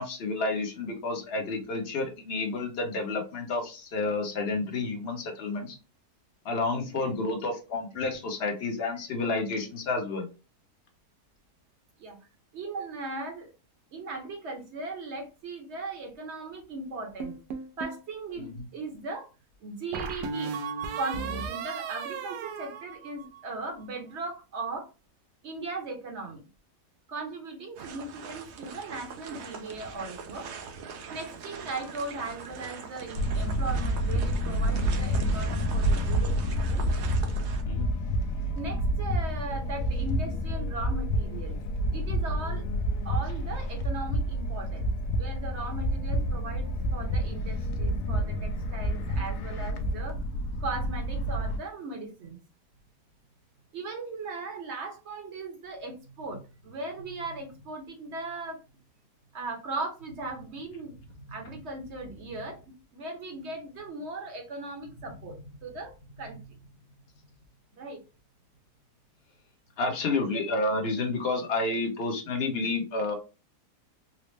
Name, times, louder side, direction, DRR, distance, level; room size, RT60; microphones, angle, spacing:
voice 1, 0.0-5.8 6.4-10.3 18.4-18.5 37.7-37.9 69.8-73.1, left 3 dB, 45° left, 3 dB, 1.0 m, -30 dB
voice 2, 12.5-13.5 13.9-17.4 17.8-19.3 19.6-20.5 21.0-24.9 25.4-26.4 27.1-30.5 31.1-36.4 36.7-36.8 38.5-41.6 41.9-42.7 43.0-44.9 45.2-50.2 50.6-52.4 53.7-58.6 59.3-66.6 67.7-68.0, right 3 dB, 50° right, 3 dB, 1.1 m, -38 dB
sound 1, 17.2-18.0 19.9-23.6, right 5 dB, 85° right, 1.2 m, -35 dB
sound 2, 27.8-37.6, right 6 dB, 65° right, 0.7 m, -42 dB
sound 3, 33.1-51.6, equal, 80° left, 1.2 m, -29 dB
4.1 x 2.0 x 3.2 m, 0.31 s
omnidirectional pair, 1.7 m